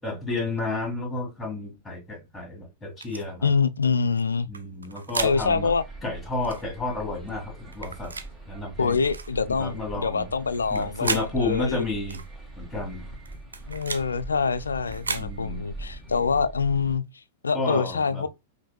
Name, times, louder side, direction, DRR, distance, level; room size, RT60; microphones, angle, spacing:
voice 1, 0.0-3.5 4.5-5.7 6.0-8.1 8.5-9.0 9.5-10.3 10.7-12.2 12.6-13.1 15.2-15.6 17.5-18.3, left 2 dB, 10° left, 1.8 m, -31 dB
sound 1, 3.0-3.2 4.5-5.4 6.4-6.6 7.7-8.3 9.1-9.3 10.5-11.3 12.1-12.3 13.3-14.1 14.9-15.3, right 4 dB, 75° right, 0.5 m, -33 dB
voice 2, 3.4-4.5 5.2-5.8 8.8-11.8 13.7-17.0 17.4-18.3, left 5 dB, 75° left, 0.3 m, -25 dB
sound 2, 5.2-17.0, right 2 dB, 15° right, 1.8 m, -42 dB
5.5 x 2.5 x 2.3 m
figure-of-eight pair, 95°, 0 cm